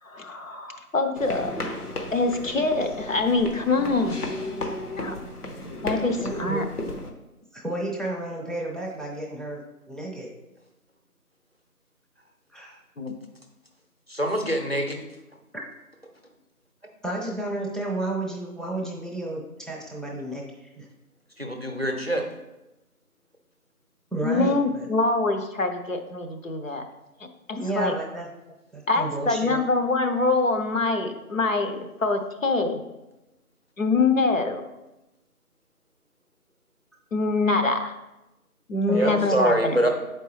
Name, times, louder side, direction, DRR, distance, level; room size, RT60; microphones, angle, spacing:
voice 1, 0.0-1.5 2.1-4.3 5.0-5.2 5.8-6.6 13.0-13.2 24.2-26.8 27.5-27.9 28.9-32.8 33.8-34.6 37.1-38.0 38.7-39.8, left 3 dB, 60° left, 5 dB, 0.7 m, -24 dB
sound 1, 1.2-7.1, left 2 dB, 80° left, 1.1 m, -34 dB
voice 2, 6.2-6.6 7.5-10.3 12.5-12.8 15.5-15.7 17.0-20.9 24.1-24.9 27.6-28.3 28.7-29.6 38.9-39.3 39.7-39.9, right 2 dB, ahead, -3 dB, 0.5 m, -32 dB
voice 3, 14.1-15.0 21.4-22.2 38.9-39.9, right 1 dB, 45° right, 3 dB, 0.6 m, -24 dB
6.8 x 4.5 x 3.1 m, 0.97 s
figure-of-eight pair, 180°, 46 cm